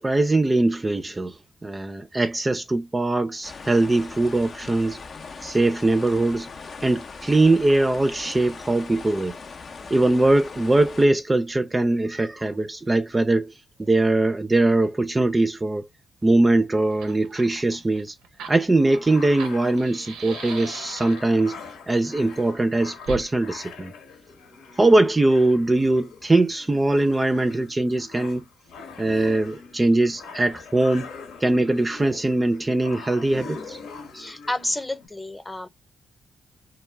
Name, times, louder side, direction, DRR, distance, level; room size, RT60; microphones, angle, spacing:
voice 1, 0.0-5.0 5.4-6.5 6.8-9.4 9.9-15.9 16.2-18.2 18.5-21.6 21.9-23.9 24.8-28.5 29.0-31.1 31.4-33.8, right 2 dB, 25° right, 0.4 m, -21 dB
sound 1, 3.4-11.0, left 4 dB, 55° left, 0.5 m, -40 dB
voice 2, 9.8-10.1 34.1-35.7, left 1 dB, 15° left, 0.8 m, -31 dB
Fire, 16.5-16.6 16.9-21.4 23.0-23.3, right 6 dB, 85° right, 0.5 m, -39 dB
sound 2, 18.7-35.1, left 4 dB, 85° left, 1.0 m, -42 dB
2.2 x 2.0 x 3.2 m
supercardioid pair, 45°, 0 cm